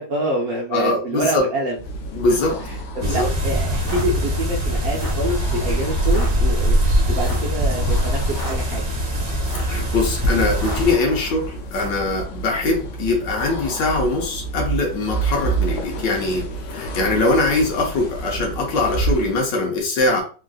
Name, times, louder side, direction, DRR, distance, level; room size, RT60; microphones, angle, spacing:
voice 1, 0.0-1.8 3.0-6.7 7.1-8.8, right 1 dB, 65° right, -2 dB, 1.0 m, -26 dB
voice 2, 0.7-1.5 2.1-2.6 3.0-3.3 9.6-20.2, left 2 dB, 70° left, 1 dB, 1.4 m, -22 dB
sound 1, 1.7-19.5, right 2 dB, 85° left, 1.5 m, -30 dB
sound 2, 3.0-10.9, equal, 40° right, 1.1 m, -22 dB
sound 3, 3.7-4.1 4.8-5.3 6.0-6.3 7.2-7.5 8.2-8.6 9.3-9.8 10.5-10.9 11.6-12.0, equal, 35° left, 1.2 m, -34 dB
3.7 x 2.4 x 2.3 m, 0.38 s
omnidirectional pair, 2.1 m